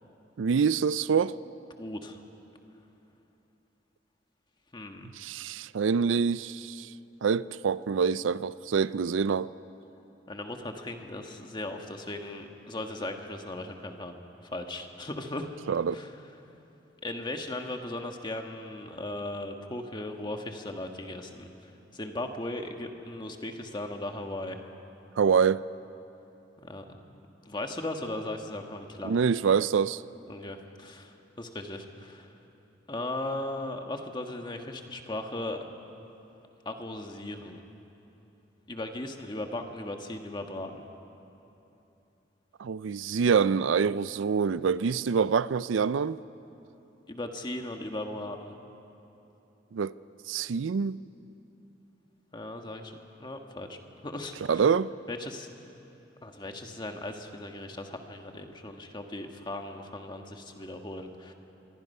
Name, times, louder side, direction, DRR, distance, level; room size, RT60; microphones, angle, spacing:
voice 1, 0.4-1.3 5.2-6.9 7.2-9.5 15.7-16.0 25.2-25.6 29.0-30.0 42.6-46.2 49.7-49.9 50.3-51.0 54.5-54.9, right 6 dB, 85° right, 0.4 m, -26 dB
voice 2, 1.8-2.2 4.7-5.1 10.3-14.2 14.5-15.5 15.9-16.1 17.0-24.6 26.6-29.2 30.3-32.3 32.9-35.6 36.6-37.6 38.7-40.9 47.1-48.5 52.3-52.9 53.2-53.8 54.0-54.6 55.1-55.5 56.2-61.3, left 1 dB, 25° left, 1.4 m, -37 dB
26.0 x 23.0 x 5.5 m
head